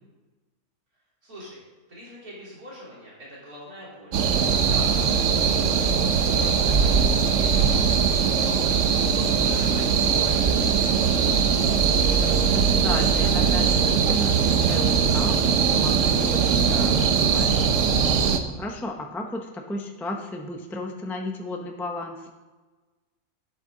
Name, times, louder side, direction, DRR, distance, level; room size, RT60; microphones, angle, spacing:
voice 1, 1.2-1.6 1.9-4.1 4.5-5.0 5.3-8.8 9.1-11.4, equal, 85° right, -6 dB, 3.9 m, -43 dB
sound 1, 4.1-18.4, right 6 dB, 65° right, 1.0 m, -21 dB
voice 2, 7.5-7.9 11.7-22.3, left 2 dB, ahead, 3 dB, 0.5 m, -35 dB
11.0 x 8.7 x 3.8 m, 1.3 s
omnidirectional pair, 1.5 m